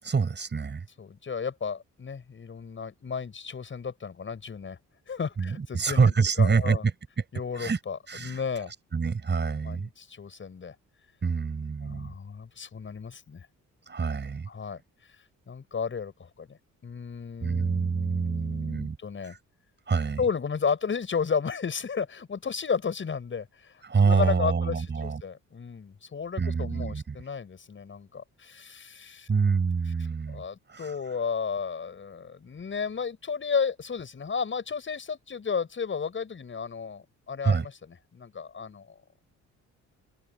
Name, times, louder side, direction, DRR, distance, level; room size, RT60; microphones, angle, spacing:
voice 1, 0.0-0.8 5.4-6.8 7.5-7.8 8.1-8.4 8.9-9.9 11.2-12.1 13.9-14.5 17.4-19.0 19.2-19.4 19.9-20.2 23.8-25.2 26.4-27.2 29.3-30.4 30.7-31.0 37.4-37.6, right 5 dB, 35° right, 6.6 m, -26 dB
voice 2, 1.0-4.8 5.1-6.8 7.3-8.7 9.6-10.8 11.8-13.5 14.5-14.8 15.5-19.3 20.2-29.3 30.3-39.0, left 6 dB, 40° left, 7.1 m, -33 dB
open air
cardioid pair, 90°, 30 cm